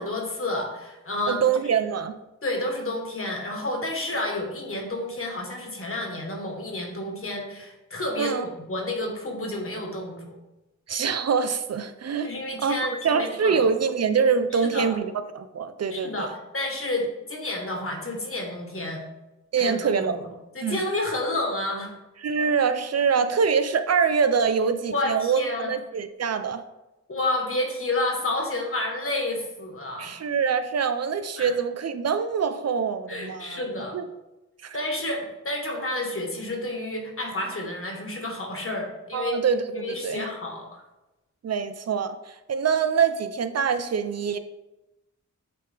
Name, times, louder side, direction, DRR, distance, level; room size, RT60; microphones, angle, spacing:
voice 1, 0.0-1.4 2.4-10.4 12.2-13.7 14.5-14.9 15.9-19.0 19.6-20.3 20.5-21.9 24.9-25.7 27.1-30.2 31.4-31.5 33.1-34.0 34.7-39.4 39.7-40.8, left 1 dB, 45° left, 1 dB, 1.4 m, -30 dB
voice 2, 1.3-2.2 8.2-8.5 10.9-12.3 12.6-12.7 13.0-16.3 19.5-20.2 20.6-20.8 22.2-26.6 30.0-33.6 33.9-34.0 34.6-34.8 39.1-40.2 41.4-44.4, right 6 dB, 55° right, 10 dB, 0.4 m, -24 dB
8.4 x 3.4 x 3.4 m, 1.0 s
wide cardioid pair, 85°, 30 cm